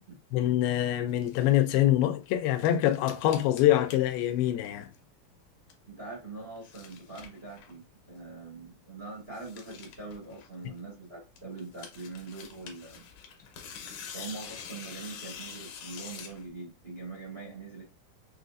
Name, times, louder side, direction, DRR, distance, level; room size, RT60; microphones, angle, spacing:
voice 1, 0.3-4.9, left 13 dB, 85° left, 2.4 m, -25 dB
sound 1, 1.1-1.8 2.2-5.0 5.3-5.9 6.3-7.8 8.2-8.3 8.5-8.6 8.8-8.9 9.2-10.9 11.4-16.4, left 7 dB, 70° left, 1.9 m, -46 dB
voice 2, 5.9-13.0 14.1-17.8, right 3 dB, 85° right, 0.5 m, -43 dB
6.4 x 2.4 x 2.5 m
omnidirectional pair, 4.2 m